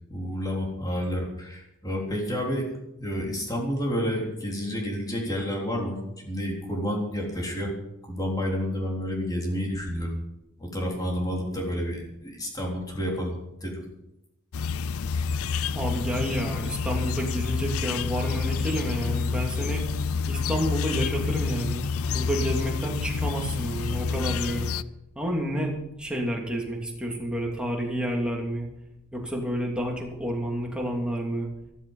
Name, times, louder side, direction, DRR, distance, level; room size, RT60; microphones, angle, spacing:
voice 1, 0.1-2.7 3.0-7.7 8.0-10.1 10.6-13.8, equal, 20° left, -1 dB, 3.6 m, -30 dB
sound 1, 14.5-24.8, left 5 dB, 80° left, 0.5 m, -28 dB
voice 2, 15.7-19.8 20.3-24.7 25.1-28.7 29.1-31.5, equal, 5° right, -1 dB, 2.8 m, -30 dB
14.5 x 13.5 x 5.6 m, 0.87 s
head